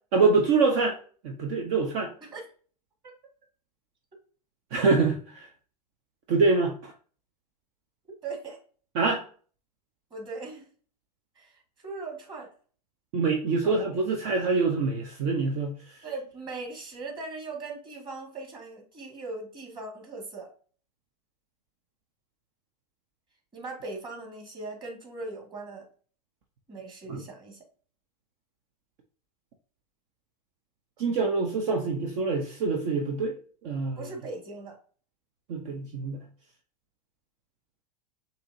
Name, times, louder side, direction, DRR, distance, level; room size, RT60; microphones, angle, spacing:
voice 1, 0.1-1.0 1.2-2.1 4.7-5.5 6.3-6.9 8.9-9.2 13.1-16.0 27.1-27.2 31.0-33.4 33.6-34.0 35.5-36.2, right 4 dB, 55° right, 3 dB, 0.8 m, -25 dB
voice 2, 8.2-8.6 10.1-10.6 11.4-12.5 13.6-13.7 16.0-20.5 23.5-25.9 26.7-27.6 34.0-34.8, right 3 dB, 25° right, 0 dB, 1.9 m, -39 dB
6.8 x 2.9 x 2.7 m, 0.42 s
hypercardioid pair, 115°, 21 cm